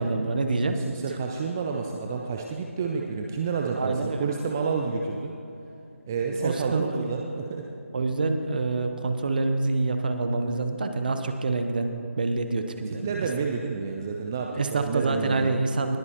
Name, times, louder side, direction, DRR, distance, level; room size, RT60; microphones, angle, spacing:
voice 1, 0.0-0.8 3.8-4.2 6.3-7.1 7.9-13.3 14.6-16.0, right 3 dB, 40° right, 7 dB, 0.9 m, -27 dB
voice 2, 0.7-5.3 6.1-7.7 12.9-15.6, right 5 dB, 10° right, 1 dB, 0.3 m, -30 dB
20.0 x 9.5 x 3.0 m, 2.7 s
figure-of-eight pair, 155°, 8 cm